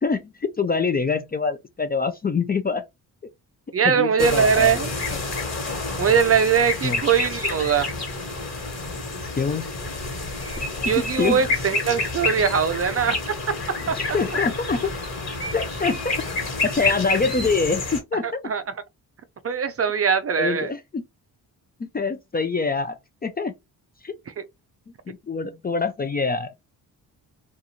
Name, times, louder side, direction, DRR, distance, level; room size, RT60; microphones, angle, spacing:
voice 1, 0.0-2.8 3.2-3.3 3.8-5.0 6.8-7.0 9.3-9.7 10.6-11.4 13.9-14.9 15.5-16.1 16.4-18.4 20.4-21.0 21.8-23.5 24.0-24.2 24.9-26.5, left 4 dB, 25° left, 0.4 m, -25 dB
voice 2, 3.7-4.9 6.0-7.9 10.8-13.2 13.7-14.0 18.4-18.6 19.4-20.7, right 7 dB, 40° right, 0.5 m, -21 dB
sound 1, 4.2-18.0, left 3 dB, 40° left, 1.6 m, -29 dB
2.5 x 2.5 x 2.8 m
cardioid pair, 80°, 39 cm